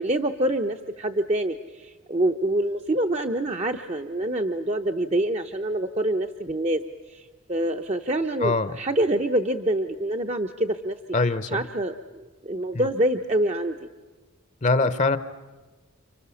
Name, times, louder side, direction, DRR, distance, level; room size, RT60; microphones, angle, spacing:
voice 1, 0.0-6.8 7.1-7.2 7.5-10.9 11.5-13.8, right 1 dB, 30° right, 5 dB, 0.7 m, -26 dB
voice 2, 8.4-8.8 11.1-11.6 12.7-12.9 14.6-15.2, left 3 dB, 35° left, 13 dB, 0.8 m, -23 dB
30.0 x 25.5 x 7.0 m, 1.3 s
head